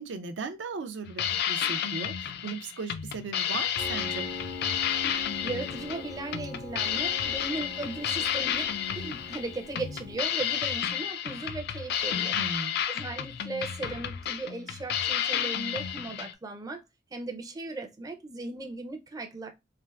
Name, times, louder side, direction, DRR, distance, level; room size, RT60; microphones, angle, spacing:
voice 1, 0.0-4.3 12.3-12.7, right 4 dB, 75° right, 0.4 m, -37 dB
sound 1, 1.1-16.3, left 9 dB, 60° left, 0.3 m, -31 dB
Piano, 3.8-10.2, left 1 dB, 85° left, 0.8 m, -42 dB
voice 2, 5.4-8.7 8.9-12.4 12.9-16.8 17.1-19.5, right 3 dB, 20° right, 0.4 m, -37 dB
3.4 x 2.4 x 2.3 m
head